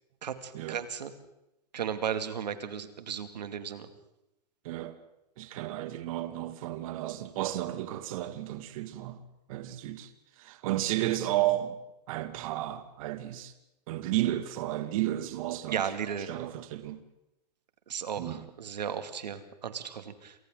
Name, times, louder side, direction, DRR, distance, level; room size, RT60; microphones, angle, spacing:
voice 1, 0.2-1.1 1.7-3.9 15.7-16.3 17.9-20.4, right 8 dB, 85° right, 2.4 m, -35 dB
voice 2, 4.6-5.0 5.4-9.2 9.5-11.8 12.1-13.5 13.9-15.9 16.3-17.0 18.2-18.5, right 14 dB, 55° right, 2.2 m, -33 dB
28.0 x 27.5 x 3.9 m
hypercardioid pair, 125°, 21 cm